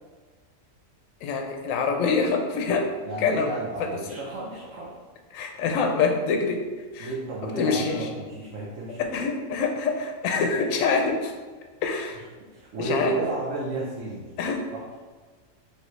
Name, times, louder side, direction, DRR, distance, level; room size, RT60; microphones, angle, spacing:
voice 1, 1.2-2.8 3.2-3.5 5.3-6.6 6.9-7.1 7.6-8.0 9.1-11.3 11.8-12.2 12.8-13.1 14.4-14.6, left 5 dB, 80° left, 3 dB, 1.0 m, -25 dB
voice 2, 3.0-5.0 7.0-9.1 12.5-14.3 14.7-14.8, right 3 dB, 70° right, -5 dB, 1.2 m, -32 dB
5.2 x 3.2 x 3.1 m, 1.4 s
omnidirectional pair, 1.4 m